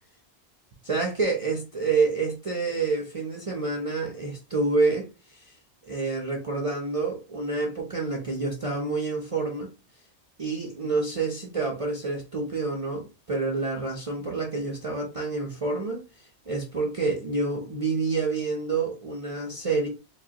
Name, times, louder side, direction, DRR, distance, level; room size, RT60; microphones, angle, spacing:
voice 1, 0.8-5.1 5.3-5.4 5.8-9.7 10.4-16.0 16.5-19.9, right 4 dB, 35° right, 0.6 m, -28 dB
4.7 x 2.3 x 2.8 m
omnidirectional pair, 1.2 m